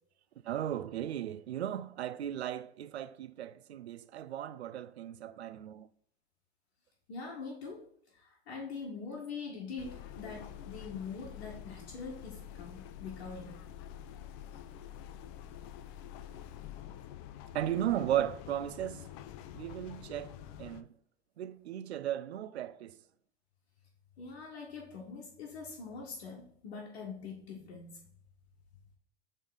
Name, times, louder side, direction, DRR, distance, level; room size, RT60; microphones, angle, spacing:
voice 1, 0.4-5.9 17.5-19.1 19.5-20.9 21.4-23.0, right 11 dB, 85° right, 0.5 m, -36 dB
voice 2, 7.1-7.8 8.1-13.6 24.2-28.0, left 5 dB, 70° left, 1.7 m, -43 dB
sound 1, 9.8-20.8, left 10 dB, 45° left, 0.6 m, -47 dB
7.2 x 3.7 x 3.9 m
hypercardioid pair, 95°, 32 cm